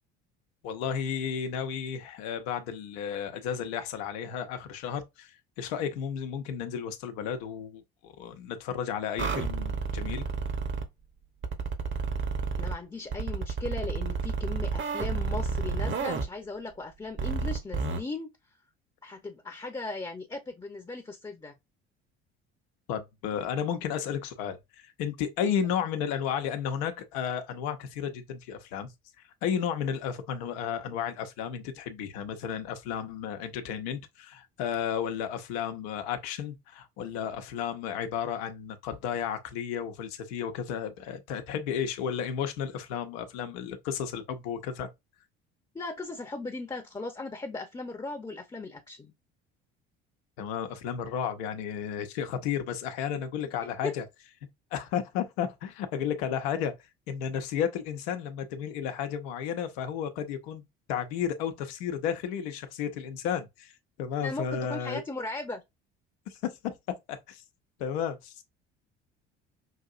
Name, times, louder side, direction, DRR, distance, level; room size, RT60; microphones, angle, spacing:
voice 1, 0.6-10.2 22.9-28.9 29.4-44.9 50.4-54.0 54.7-56.7 57.1-60.6 60.9-63.7 64.0-65.0 66.3-66.4 67.3-67.4 67.8-68.4, left 8 dB, 70° left, 0.9 m, -33 dB
sound 1, 9.2-10.9 11.4-12.7 13.1-16.2 17.2-18.0, right 5 dB, 40° right, 1.0 m, -30 dB
voice 2, 12.6-18.3 19.0-21.5 45.7-49.1 53.8-53.9 64.2-65.6, left 3 dB, 15° left, 0.8 m, -37 dB
5.8 x 2.7 x 2.5 m
hypercardioid pair, 60°, 31 cm